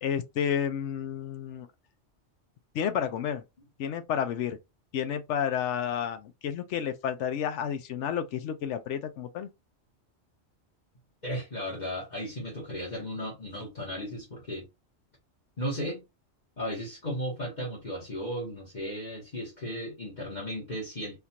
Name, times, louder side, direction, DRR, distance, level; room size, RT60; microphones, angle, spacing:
voice 1, 0.0-1.7 2.7-3.4 3.8-4.6 4.9-9.5, left 8 dB, 80° left, 0.9 m, -31 dB
voice 2, 11.2-14.7 15.6-16.0 16.6-21.2, equal, 40° left, 1.4 m, -35 dB
3.6 x 2.4 x 2.8 m
omnidirectional pair, 1.2 m